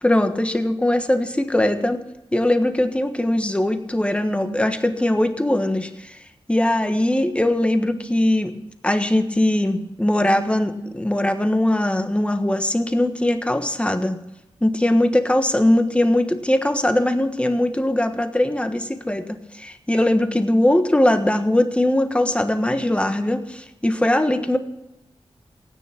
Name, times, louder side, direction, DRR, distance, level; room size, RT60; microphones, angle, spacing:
voice 1, 0.0-2.0 2.3-6.2 6.5-8.5 8.8-14.2 14.6-24.6, left 1 dB, 10° left, 7 dB, 1.3 m, -20 dB
17.0 x 9.5 x 6.0 m, 0.93 s
wide cardioid pair, 85°, 10 cm